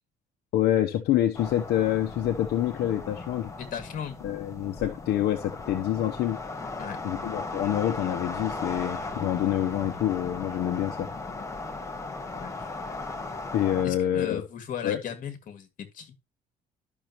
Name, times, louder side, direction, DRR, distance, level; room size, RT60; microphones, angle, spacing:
voice 1, 0.5-3.5 4.2-6.4 7.0-11.1 13.5-14.4 14.8-15.0, left 11 dB, 75° left, 0.9 m, -26 dB
sound 1, 1.3-13.9, left 3 dB, 15° left, 1.6 m, -37 dB
voice 2, 3.6-4.2 6.8-7.0 12.2-12.6 13.8-15.7 15.9-16.1, left 8 dB, 55° left, 2.3 m, -36 dB
12.0 x 6.3 x 3.1 m
cardioid pair, 110°, 17 cm